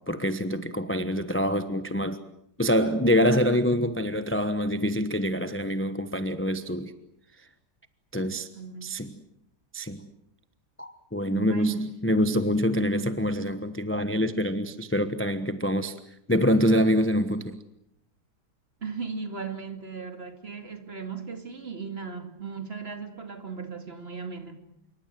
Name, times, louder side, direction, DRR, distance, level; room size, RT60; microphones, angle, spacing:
voice 1, 0.1-2.2 2.6-6.9 8.1-8.5 8.8-9.1 9.7-10.0 10.8-15.9 16.3-17.6, equal, 10° left, 0.8 m, -25 dB
voice 2, 8.3-9.1 11.3-11.8 18.8-24.6, right 5 dB, 40° right, 2.5 m, -37 dB
26.5 x 23.5 x 7.6 m
omnidirectional pair, 1.7 m